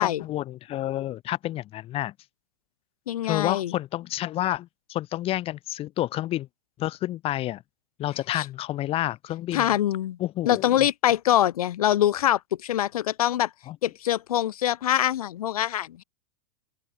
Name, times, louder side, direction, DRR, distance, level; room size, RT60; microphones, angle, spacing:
voice 1, 0.0-2.1 3.2-6.5 6.8-7.6 8.0-9.7 10.2-10.8 13.7-13.8, left 14 dB, 30° left, 0.8 m, -29 dB
voice 2, 3.1-3.7 8.3-8.5 9.5-10.2 10.4-13.5 13.8-16.0, left 12 dB, 80° left, 1.2 m, -24 dB
open air
hypercardioid pair, 120°, 18 cm